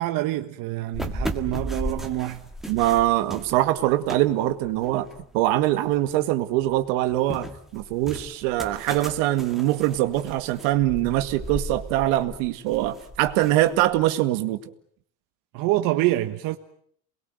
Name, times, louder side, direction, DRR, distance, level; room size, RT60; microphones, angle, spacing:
voice 1, 0.0-2.4 15.5-16.6, right 16 dB, 65° right, 1.4 m, -26 dB
sound 1, 0.9-6.1 6.5-14.1, equal, ahead, 1.9 m, -36 dB
voice 2, 2.7-5.1 5.3-7.5 7.7-14.6, right 15 dB, 80° right, 2.1 m, -23 dB
28.0 x 21.5 x 7.9 m
cardioid pair, 120°, 36 cm